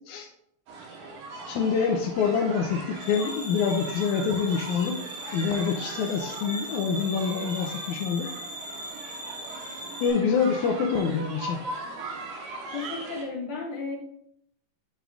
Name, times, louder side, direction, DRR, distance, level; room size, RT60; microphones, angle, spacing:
sound 1, 0.7-13.2, right 3 dB, 85° right, 2.9 m, -40 dB
voice 1, 1.5-4.9 5.3-8.3 10.0-11.6, left 6 dB, 85° left, 2 dB, 2.1 m, -26 dB
sound 2, 2.9-10.1, equal, 30° right, 1.8 m, -39 dB
voice 2, 12.7-14.0, left 4 dB, 45° left, -4 dB, 2.9 m, -33 dB
8.2 x 8.2 x 2.5 m, 0.74 s
omnidirectional pair, 3.4 m